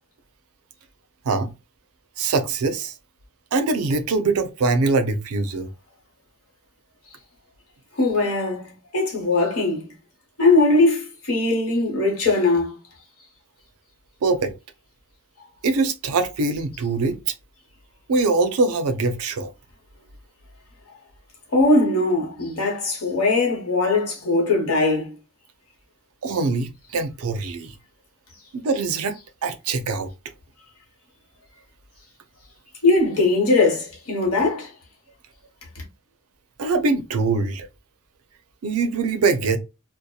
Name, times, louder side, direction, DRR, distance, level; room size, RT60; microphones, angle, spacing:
voice 1, 2.2-2.9 3.5-5.7 14.2-14.5 15.6-17.2 18.1-19.5 26.2-27.7 28.5-29.2 29.4-30.1 36.6-37.7 38.6-39.6, right 3 dB, 75° right, 0.4 m, -23 dB
voice 2, 8.0-9.9 10.4-12.7 21.5-25.1 32.8-34.7 35.8-35.9, left 2 dB, 75° left, 1.1 m, -20 dB
2.7 x 2.0 x 2.2 m
head